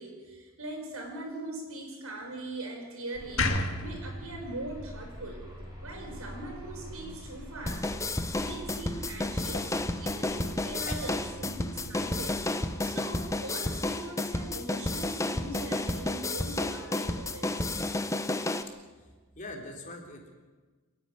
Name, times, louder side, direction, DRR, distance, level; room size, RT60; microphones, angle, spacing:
voice 1, 0.0-5.5 5.8-17.8, right 2 dB, 75° right, 2 dB, 6.1 m, -41 dB
sound 1, 3.1-12.4, equal, 15° right, 7.4 m, -45 dB
sound 2, 3.4-6.5, left 2 dB, 60° left, 2.0 m, -33 dB
sound 3, 7.7-18.6, left 2 dB, 15° left, 0.8 m, -31 dB
voice 2, 18.7-20.2, left 2 dB, 35° left, 1 dB, 3.7 m, -43 dB
27.5 x 11.0 x 9.8 m, 1.3 s
head